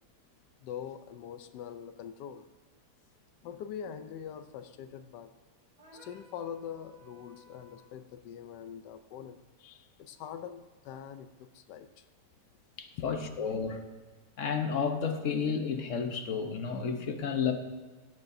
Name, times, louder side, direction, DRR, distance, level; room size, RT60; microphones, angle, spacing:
voice 1, 0.6-2.5 3.4-5.3 5.9-12.1, left 8 dB, 85° left, 1.3 m, -43 dB
sound 1, 5.8-8.0, equal, 70° right, 3.6 m, -56 dB
voice 2, 12.8-13.8 14.4-17.5, left 6 dB, 55° left, 1.2 m, -31 dB
16.5 x 9.0 x 2.6 m
omnidirectional pair, 1.8 m